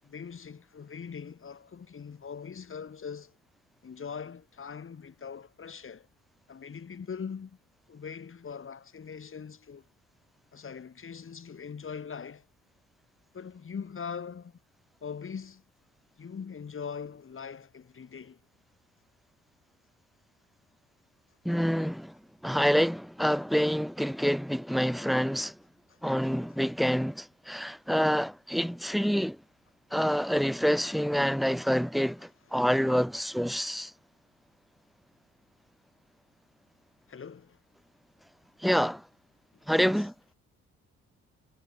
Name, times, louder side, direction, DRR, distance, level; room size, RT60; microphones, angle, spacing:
voice 1, 0.0-3.3 3.8-6.1 6.5-7.6 7.9-9.9 10.5-12.4 13.3-14.6 15.0-15.6 16.2-18.4 25.9-26.0 37.1-37.6 39.8-40.1, left 6 dB, 45° left, 7.4 m, -41 dB
voice 2, 21.4-22.1 22.4-25.6 26.0-29.4 29.9-33.9 38.6-39.0 39.7-40.1, equal, ahead, 2.0 m, -27 dB
cardioid pair, 90°, 30 cm